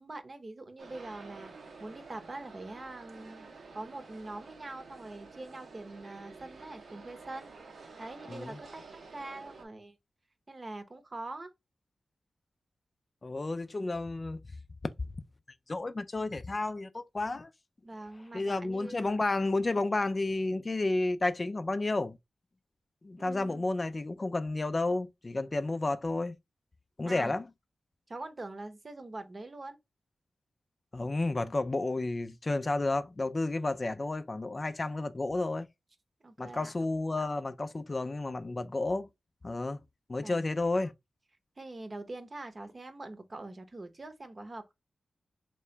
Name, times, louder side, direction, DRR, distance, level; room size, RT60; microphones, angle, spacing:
voice 1, 0.0-7.5 8.0-10.0 10.5-11.5 17.8-19.1 23.2-23.6 27.0-27.3 28.1-29.8 36.2-36.7 40.2-40.4 41.6-44.7, right 2 dB, 40° right, 0.8 m, -44 dB
sound 1, 0.8-9.7, right 4 dB, 85° right, 0.9 m, -50 dB
voice 2, 8.3-8.6 13.2-14.4 15.7-17.5 18.3-22.2 23.0-26.4 27.0-27.5 30.9-35.7 36.4-39.1 39.4-39.8 40.1-40.9, left 2 dB, 40° left, 0.3 m, -31 dB
3.3 x 2.9 x 3.2 m
cardioid pair, 65°, 0 cm